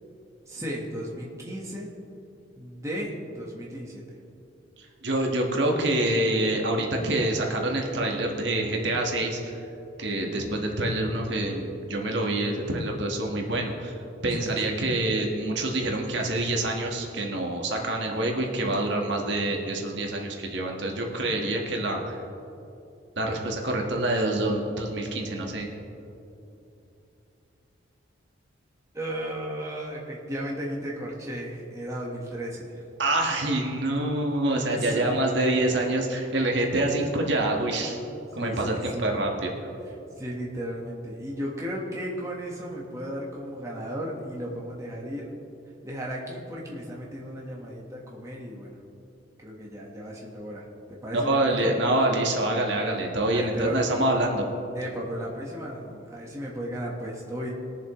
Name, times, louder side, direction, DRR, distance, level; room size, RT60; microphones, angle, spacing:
voice 1, 0.4-1.9 2.6-4.2 10.1-10.4 14.3-14.7 28.9-32.8 34.5-35.1 38.3-39.1 39.8-45.3 45.8-48.8 49.4-50.6 50.9-51.7 53.3-53.8 54.7-57.5, equal, 15° right, -3 dB, 1.3 m, -35 dB
voice 2, 5.0-9.5 10.0-13.9 14.2-22.2 23.2-25.7 33.0-38.0 38.3-39.5 51.1-54.4, right 1 dB, 65° right, 0 dB, 1.5 m, -26 dB
21.0 x 7.3 x 3.1 m, 2.8 s
head